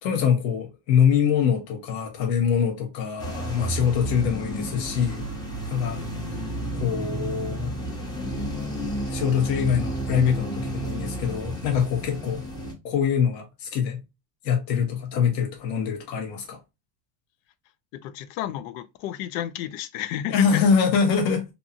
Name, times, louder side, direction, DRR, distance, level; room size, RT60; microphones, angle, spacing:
voice 1, 0.0-5.2 5.6-6.0 6.3-6.4 6.8-7.7 8.9-12.4 12.8-14.0 14.4-16.6 20.3-21.4, left 7 dB, 80° left, 1.1 m, -24 dB
sound 1, 3.2-12.7, right 1 dB, 10° left, 0.9 m, -31 dB
voice 2, 17.9-20.6, left 12 dB, 55° left, 0.5 m, -32 dB
2.7 x 2.3 x 2.6 m
supercardioid pair, 100°, 50 cm